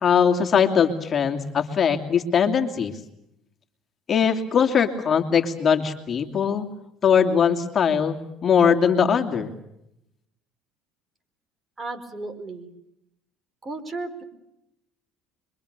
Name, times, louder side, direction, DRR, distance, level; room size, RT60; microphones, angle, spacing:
voice 1, 0.0-3.0 4.1-6.7 7.0-9.5, left 7 dB, 35° left, 4 dB, 2.8 m, -21 dB
voice 2, 11.8-12.7 13.6-14.2, right 3 dB, 25° right, 10 dB, 4.7 m, -34 dB
26.5 x 23.5 x 6.8 m, 0.84 s
supercardioid pair, 100°, 0 cm